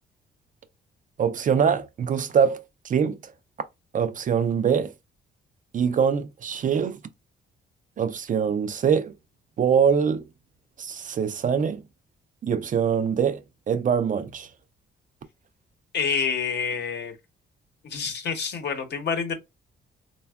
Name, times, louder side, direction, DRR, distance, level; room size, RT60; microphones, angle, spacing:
voice 1, 1.2-3.3 3.9-4.9 5.7-7.0 8.0-9.1 9.6-10.2 10.8-11.8 12.4-13.4 13.7-14.5, right 7 dB, 40° right, 0.4 m, -23 dB
voice 2, 15.9-17.1 17.8-19.3, left 6 dB, 60° left, 0.9 m, -27 dB
3.2 x 2.2 x 2.2 m
cardioid pair, 90°, 20 cm